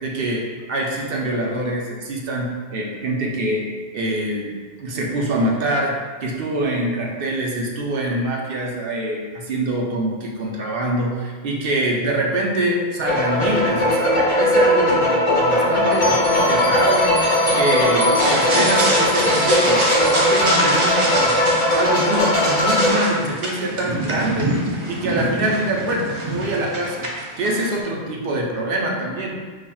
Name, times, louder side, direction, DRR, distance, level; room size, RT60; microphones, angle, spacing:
voice 1, 0.0-4.5 4.8-17.1 17.5-21.4 21.7-24.5 24.9-27.1 27.4-29.4, right 1 dB, 65° right, -2 dB, 0.8 m, -24 dB
sound 1, 13.0-22.9, left 1 dB, 40° left, 0.9 m, -18 dB
Bell, 15.8-20.5, left 2 dB, 25° left, 0.3 m, -33 dB
sound 2, 18.2-27.8, right 1 dB, 40° right, 0.5 m, -25 dB
5.6 x 2.4 x 2.3 m, 1.5 s
omnidirectional pair, 1.1 m